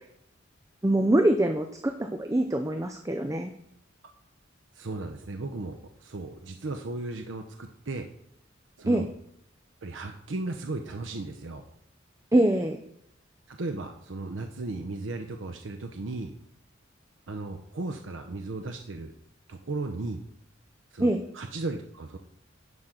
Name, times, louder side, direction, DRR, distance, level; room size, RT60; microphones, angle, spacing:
voice 1, 0.8-3.5 8.9-9.1 12.3-12.8 21.0-21.2, right 1 dB, 15° right, 5 dB, 0.5 m, -24 dB
voice 2, 4.7-8.1 8.8-9.1 9.8-11.6 13.5-16.3 17.3-19.1 19.5-20.2 20.9-22.2, right 2 dB, 75° right, 5 dB, 0.7 m, -36 dB
11.0 x 5.7 x 3.8 m, 0.75 s
head